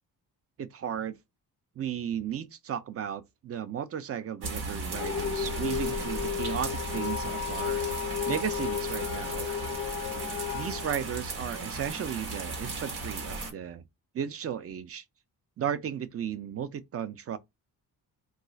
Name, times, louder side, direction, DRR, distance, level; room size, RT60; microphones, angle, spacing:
voice 1, 0.6-1.2 1.8-7.8 8.2-9.5 10.5-13.8 14.1-15.0 15.6-17.4, right 9 dB, 40° right, 0.4 m, -35 dB
sound 1, 4.4-13.5, right 3 dB, 85° right, 1.1 m, -36 dB
sound 2, 4.9-11.9, left 9 dB, 50° left, 0.4 m, -34 dB
sound 3, 5.4-11.6, right 4 dB, 65° right, 0.9 m, -50 dB
2.4 x 2.3 x 3.9 m
cardioid pair, 120°, 38 cm